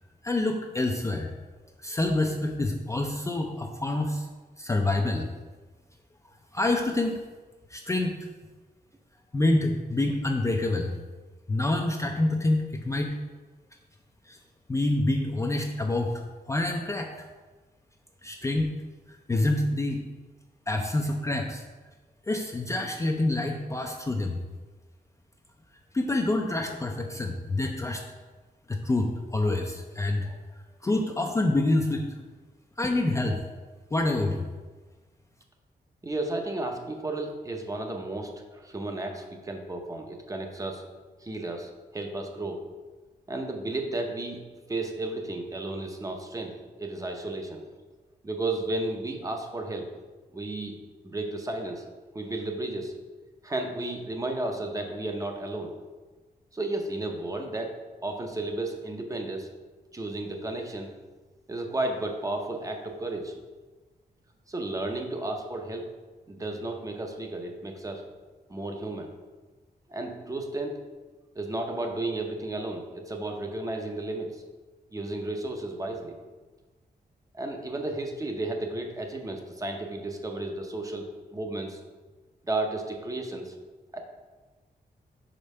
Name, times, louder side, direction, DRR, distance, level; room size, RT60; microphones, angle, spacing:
voice 1, 0.2-1.3 1.8-4.3 4.6-5.3 6.5-7.2 7.7-8.1 9.3-11.0 11.5-13.2 14.3-14.4 14.7-16.1 16.5-17.1 18.2-18.7 19.1-20.0 20.7-21.6 22.3-24.4 25.9-28.0 28.7-30.4 30.8-32.2 32.8-33.4 33.9-34.5, left 2 dB, 20° left, 2 dB, 0.4 m, -27 dB
voice 2, 36.0-40.8 41.2-42.6 43.3-44.4 44.7-47.6 48.2-49.9 50.3-50.8 51.0-51.8 52.1-52.9 53.4-55.8 56.5-59.5 59.9-60.9 61.5-63.4 64.5-65.9 66.3-68.1 68.5-69.1 69.9-70.8 71.4-74.4 74.9-76.2 77.3-81.1 81.3-81.8 82.5-83.5 83.9-84.0, right 2 dB, 20° right, 3 dB, 0.6 m, -33 dB
5.1 x 4.4 x 5.4 m, 1.3 s
wide cardioid pair, 155°, 17 cm